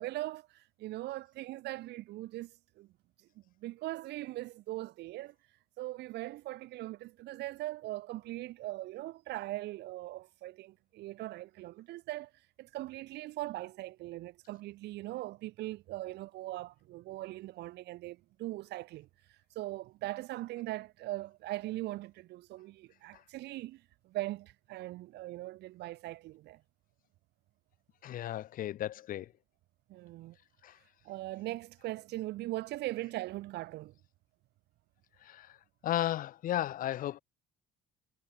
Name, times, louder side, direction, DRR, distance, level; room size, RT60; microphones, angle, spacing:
voice 1, 0.0-2.9 3.6-5.3 5.8-12.3 12.6-19.1 19.6-26.6 29.9-30.4 31.1-33.9, right 17 dB, 70° right, 4.0 m, -40 dB
voice 2, 28.0-29.3 30.6-30.8 35.2-35.6 35.8-37.2, left 12 dB, 50° left, 1.3 m, -34 dB
cardioid pair, 140°, 18 cm